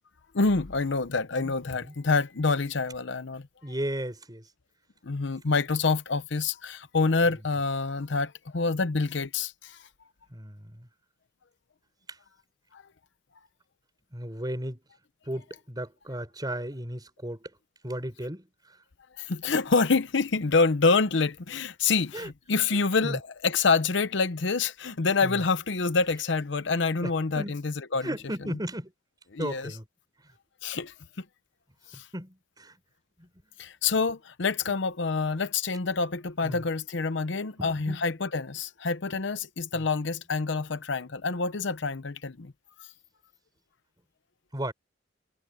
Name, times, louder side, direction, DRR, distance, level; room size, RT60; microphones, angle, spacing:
voice 1, 0.3-3.5 5.0-9.8 12.7-12.8 19.2-28.1 28.5-28.6 29.3-29.7 30.6-30.9 31.9-32.1 33.6-42.5, left 4 dB, 65° left, 0.8 m, -27 dB
voice 2, 1.4-1.9 3.6-4.5 10.3-10.9 14.1-14.8 15.3-17.5 17.8-18.4 22.1-22.3 22.7-23.2 25.2-25.4 27.0-27.6 28.0-28.9 29.4-29.8 31.9-32.8 33.2-33.3 36.4-36.7 37.6-38.0 39.7-39.8 44.5-44.7, right 1 dB, 20° right, 5.3 m, -35 dB
head